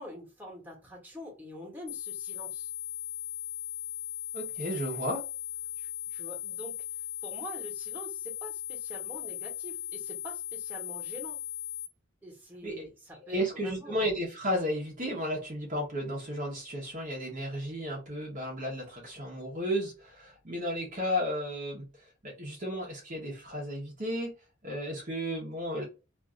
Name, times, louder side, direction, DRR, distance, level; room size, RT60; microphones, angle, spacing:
voice 1, 0.0-2.7 5.8-6.8 7.2-11.4 12.2-14.0, equal, 10° right, 1.2 m, -45 dB
sound 1, 1.9-11.9, left 12 dB, 55° left, 0.7 m, -38 dB
voice 2, 4.3-5.3 12.6-12.8 13.2-21.9 22.2-24.4 24.6-25.9, equal, 40° right, 0.9 m, -33 dB
2.6 x 2.4 x 2.6 m
head